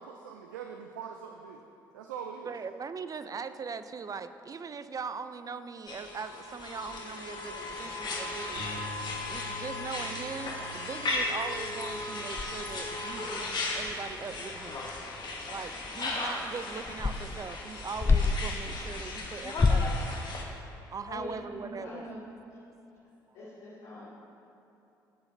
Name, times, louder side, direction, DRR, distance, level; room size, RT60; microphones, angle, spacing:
voice 1, 0.0-1.6 1.9-2.5, right 7 dB, 80° right, 4 dB, 0.5 m, -42 dB
voice 2, 2.4-8.7 9.2-14.9 15.5-20.2 20.9-22.0, right 5 dB, 35° right, 11 dB, 0.6 m, -40 dB
sound 1, 5.9-20.4, left 2 dB, 45° left, 1.8 m, -36 dB
sound 2, 7.6-9.0 9.6-9.7 9.9-10.1 10.5-10.6 10.9-11.4 11.8-11.9 12.3-18.6 19.4-20.0, left 4 dB, 25° left, 0.7 m, -31 dB
sound 3, 8.6-14.8, equal, 50° right, 2.2 m, -48 dB
voice 3, 21.1-22.3 23.3-24.1, left 1 dB, 70° left, -10 dB, 2.7 m, -43 dB
22.5 x 7.9 x 2.8 m, 2.9 s
hypercardioid pair, 50°, 10 cm